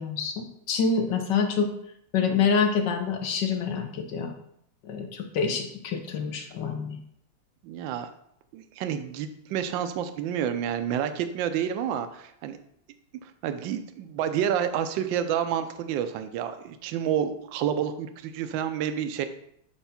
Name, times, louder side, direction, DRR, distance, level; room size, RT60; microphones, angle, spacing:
voice 1, 0.0-1.7 2.1-4.3 4.8-7.0, left 5 dB, 60° left, 4 dB, 1.4 m, -26 dB
voice 2, 7.6-8.1 8.5-12.6 13.2-19.3, right 9 dB, 70° right, 10 dB, 1.2 m, -29 dB
8.1 x 3.2 x 5.7 m, 0.72 s
omnidirectional pair, 2.4 m